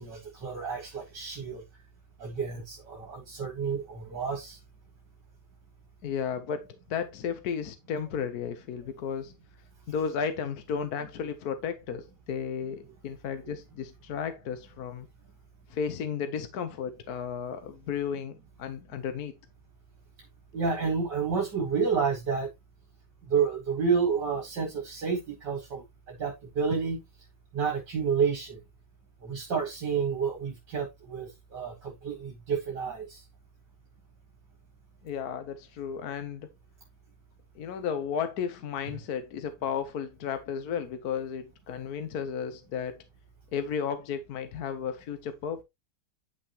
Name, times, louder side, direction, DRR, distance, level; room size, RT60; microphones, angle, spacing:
voice 1, 0.0-1.6 2.2-4.6 20.5-22.5 23.3-27.0 27.5-28.6 29.2-33.2, right 6 dB, 65° right, 2.3 m, -30 dB
voice 2, 6.0-9.3 9.9-15.1 15.7-19.3 35.0-36.5 37.5-43.0 43.5-45.6, left 7 dB, 60° left, 1.3 m, -33 dB
9.8 x 5.8 x 2.9 m
omnidirectional pair, 2.0 m